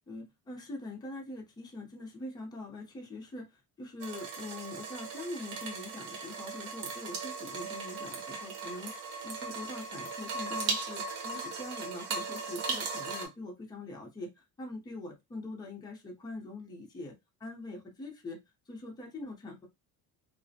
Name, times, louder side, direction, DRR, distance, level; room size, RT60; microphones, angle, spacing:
voice 1, 0.1-8.9 9.2-18.4 18.7-19.7, left 2 dB, 10° left, 0 dB, 0.5 m, -43 dB
sound 1, 4.0-13.3, right 4 dB, 90° right, 0.9 m, -38 dB
2.4 x 2.0 x 2.6 m, 0.21 s
cardioid pair, 160°, 39 cm